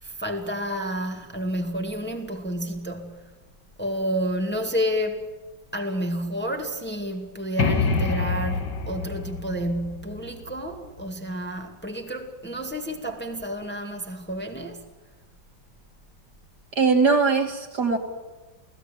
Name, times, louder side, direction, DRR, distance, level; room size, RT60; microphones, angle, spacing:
voice 1, 0.0-3.2 3.8-5.3 5.7-14.8, equal, 5° left, 2.0 m, -30 dB
sound 1, 7.6-11.2, left 4 dB, 65° left, 2.4 m, -27 dB
voice 2, 16.7-18.0, right 4 dB, 60° right, 3.2 m, -20 dB
29.0 x 18.0 x 9.1 m
omnidirectional pair, 2.0 m